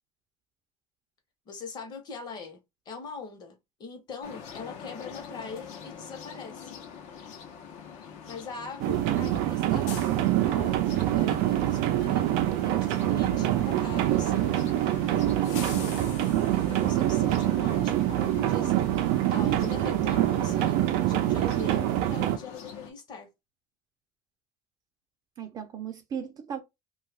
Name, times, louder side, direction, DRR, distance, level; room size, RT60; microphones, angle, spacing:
voice 1, 1.5-6.8 8.2-10.1 10.4-12.2 12.6-14.6 15.1-15.2 15.6-16.2 16.5-18.9 19.3-23.3, left 4 dB, 35° left, 0.9 m, -42 dB
sound 1, 4.2-22.9, left 7 dB, 65° left, 0.8 m, -44 dB
sound 2, 8.8-22.4, right 13 dB, 85° right, 0.5 m, -25 dB
voice 2, 15.4-15.8 25.4-26.6, right 7 dB, 30° right, 0.5 m, -37 dB
2.7 x 2.4 x 3.3 m
cardioid pair, 155°, 12 cm